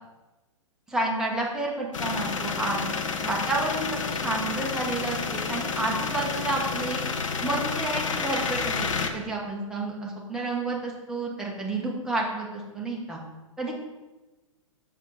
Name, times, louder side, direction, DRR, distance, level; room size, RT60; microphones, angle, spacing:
voice 1, 0.9-2.9 3.2-7.0 7.4-8.9 9.1-13.2 13.6-13.7, right 2 dB, 5° right, -3 dB, 1.5 m, -30 dB
sound 1, 1.9-9.1, left 5 dB, 65° left, 1.0 m, -30 dB
7.1 x 6.5 x 4.1 m, 1.1 s
figure-of-eight pair, 115°, 18 cm